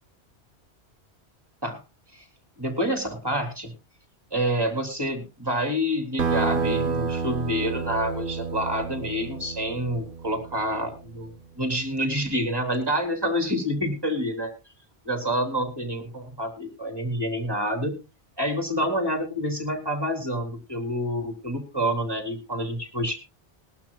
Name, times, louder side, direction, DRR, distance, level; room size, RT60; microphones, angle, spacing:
voice 1, 2.6-3.7 4.3-11.3 11.6-14.5 15.1-17.9 18.4-23.2, equal, 20° right, 5 dB, 3.7 m, -28 dB
sound 1, 6.2-11.3, right 5 dB, 50° right, 1.5 m, -30 dB
21.0 x 12.0 x 2.4 m, 0.28 s
omnidirectional pair, 1.1 m